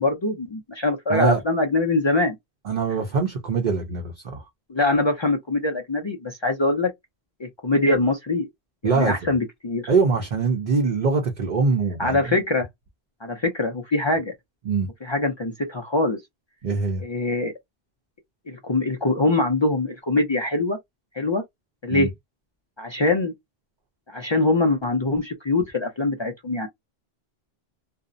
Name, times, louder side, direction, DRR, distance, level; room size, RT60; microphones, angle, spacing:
voice 1, 0.0-2.3 4.7-6.9 7.4-8.5 8.8-9.9 12.0-12.7 13.2-14.3 15.0-16.2 17.0-17.5 18.5-20.8 21.1-21.4 21.8-22.1 22.8-23.3 24.1-26.7, left 2 dB, 45° left, 0.3 m, -23 dB
voice 2, 1.1-1.4 2.6-4.4 8.8-9.3 9.9-12.4 14.6-14.9 16.6-17.0 21.9-22.1, right 4 dB, 55° right, 0.7 m, -23 dB
2.5 x 2.0 x 2.5 m
omnidirectional pair, 1.1 m